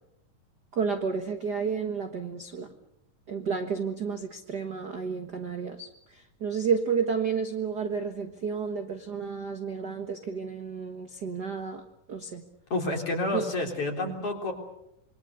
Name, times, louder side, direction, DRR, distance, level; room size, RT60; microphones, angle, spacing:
voice 1, 0.7-2.7 3.3-5.9 6.4-11.8 12.1-12.4 13.3-13.5, right 6 dB, 50° right, 5 dB, 1.2 m, -31 dB
voice 2, 12.7-14.5, left 2 dB, 40° left, 2 dB, 4.6 m, -29 dB
27.0 x 23.5 x 6.7 m, 0.78 s
omnidirectional pair, 4.1 m